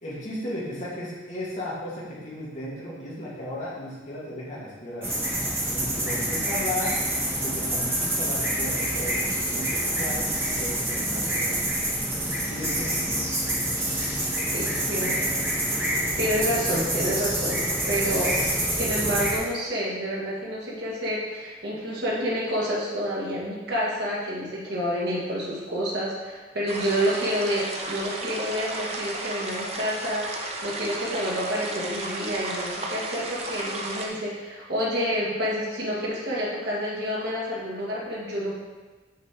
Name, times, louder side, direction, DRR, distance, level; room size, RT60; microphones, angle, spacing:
voice 1, 0.0-5.1 5.7-6.9 7.4-11.7 12.2-13.1, left 1 dB, 40° left, -7 dB, 2.1 m, -35 dB
sound 1, 5.0-19.4, right 1 dB, 15° right, 1.5 m, -27 dB
voice 2, 14.5-15.4 15.7-18.4 18.7-38.6, equal, 60° right, -5 dB, 2.0 m, -29 dB
sound 2, 26.7-34.1, right 2 dB, 35° right, 0.8 m, -34 dB
6.1 x 5.3 x 4.4 m, 1.3 s
head